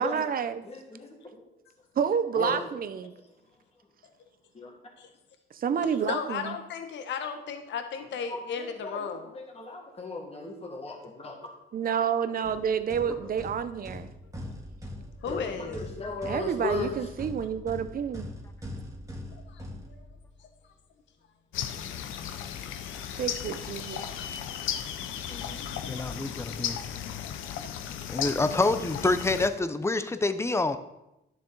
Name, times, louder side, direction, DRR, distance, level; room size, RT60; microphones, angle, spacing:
voice 1, 0.0-0.6 2.0-3.1 5.5-6.6 11.7-14.1 16.3-18.3 23.1-24.0, right 7 dB, 45° right, 11 dB, 0.7 m, -29 dB
voice 2, 0.6-1.4 2.4-2.7 4.5-4.8 8.3-11.5 13.1-13.3 15.3-17.0, left 3 dB, 30° left, 0 dB, 1.8 m, -37 dB
voice 3, 6.0-9.3 15.2-15.8 19.5-20.0, left 6 dB, 65° left, 7 dB, 1.0 m, -35 dB
sound 1, 12.4-20.4, left 1 dB, 15° right, 1.9 m, -42 dB
sound 2, 21.5-29.5, left 9 dB, 85° left, 0.7 m, -35 dB
voice 4, 25.3-25.6 25.9-26.8 28.1-30.8, left 2 dB, 15° left, 11 dB, 0.7 m, -27 dB
11.5 x 6.7 x 4.0 m, 0.91 s
cardioid pair, 90°, 20 cm